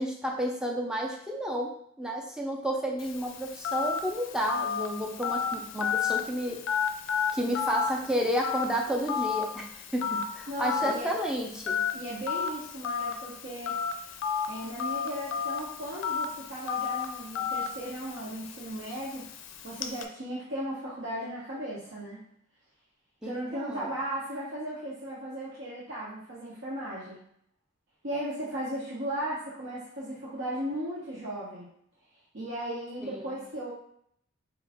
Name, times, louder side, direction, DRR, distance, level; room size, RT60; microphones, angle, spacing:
voice 1, 0.0-6.6 7.3-9.7 9.9-11.8 23.2-23.9 33.0-33.4, equal, 5° right, 0 dB, 0.5 m, -31 dB
Telephone, 3.0-20.0, left 7 dB, 65° left, 0.4 m, -33 dB
voice 2, 10.5-11.1 11.9-13.8 14.5-19.3 19.6-22.2 23.2-27.2 28.0-31.7 32.3-33.7, right 1 dB, 65° right, -7 dB, 0.9 m, -36 dB
4.6 x 2.4 x 3.5 m, 0.68 s
head